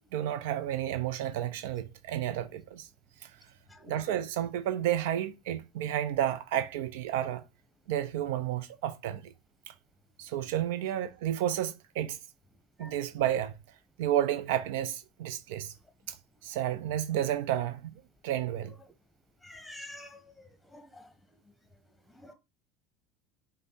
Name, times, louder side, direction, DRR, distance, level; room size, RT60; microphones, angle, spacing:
voice 1, 0.1-2.9 3.2-3.3 3.9-7.4 7.9-9.3 9.7-9.8 10.2-12.2 12.8-13.5 14.0-15.7 16.1-16.2 16.4-17.9 18.2-18.7, right 11 dB, 70° right, 0.4 m, -31 dB
voice 2, 19.4-20.2 20.7-20.9 22.2-22.3, left 1 dB, 10° left, 1.0 m, -46 dB
5.2 x 2.1 x 3.9 m
hypercardioid pair, 75°, 0 cm